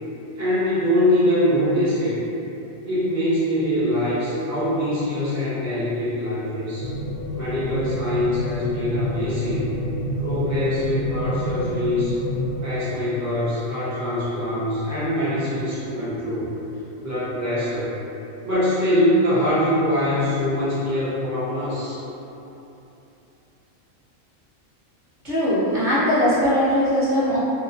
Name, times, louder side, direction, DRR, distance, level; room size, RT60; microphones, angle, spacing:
voice 1, 0.3-2.2 2.9-6.9 7.3-9.7 10.2-12.2 12.6-16.5 17.0-17.9 18.4-22.0, left 1 dB, 20° right, -12 dB, 0.4 m, -23 dB
sound 1, 6.8-12.5, equal, 85° left, 1.0 m, -28 dB
voice 2, 25.2-27.4, equal, 45° right, -13 dB, 0.8 m, -20 dB
2.9 x 2.1 x 2.5 m, 3.0 s
omnidirectional pair, 1.4 m